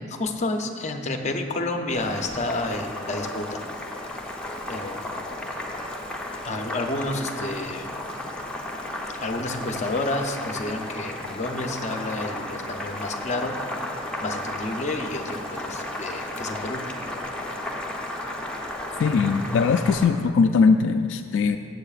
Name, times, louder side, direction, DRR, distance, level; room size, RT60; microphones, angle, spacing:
voice 1, 0.1-3.6 4.7-5.0 6.4-7.9 9.2-13.5 14.2-16.8, left 2 dB, 35° left, 4 dB, 0.6 m, -30 dB
Boiling, 1.9-20.1, left 1 dB, 5° left, 0.8 m, -34 dB
voice 2, 19.0-21.6, left 5 dB, 70° left, 7 dB, 0.3 m, -20 dB
15.5 x 7.8 x 2.4 m, 2.3 s
head